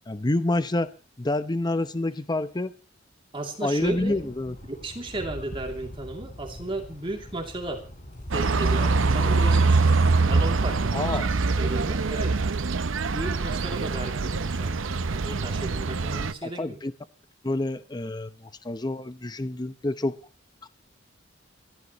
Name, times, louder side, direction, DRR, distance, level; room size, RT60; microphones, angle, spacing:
voice 1, 0.1-0.9 1.2-2.7 3.6-4.6 10.9-11.3 16.4-16.9 17.4-18.3 18.6-20.1 20.6-20.7, left 2 dB, 20° left, 0.7 m, -27 dB
voice 2, 3.3-4.1 4.7-7.8 8.3-9.8 10.2-11.2 11.6-12.4 13.1-14.7 15.1-16.8, right 2 dB, 25° right, 2.8 m, -34 dB
sound 1, 3.8-10.1, left 1 dB, 40° left, 4.2 m, -43 dB
sound 2, 8.3-16.3, right 3 dB, 80° right, 0.7 m, -24 dB
30.0 x 12.5 x 3.1 m
head